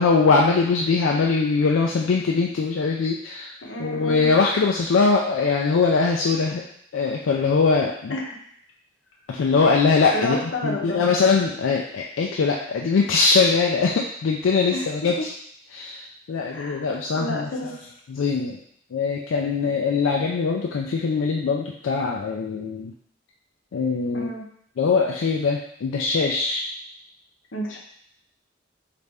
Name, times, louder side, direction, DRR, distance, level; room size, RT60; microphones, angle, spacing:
voice 1, 0.0-3.5 3.8-6.6 6.9-8.1 9.3-15.3 15.7-17.5 18.1-18.6 18.9-22.9 23.7-24.3 24.8-26.6, left 4 dB, 90° left, -1 dB, 0.4 m, -22 dB
voice 2, 3.6-4.3 8.1-8.3 10.1-11.0 14.7-14.9 15.2-15.3 16.5-17.9 24.1-24.4 27.5-27.8, left 1 dB, 70° left, -1 dB, 0.8 m, -30 dB
4.1 x 2.5 x 3.4 m, 0.67 s
head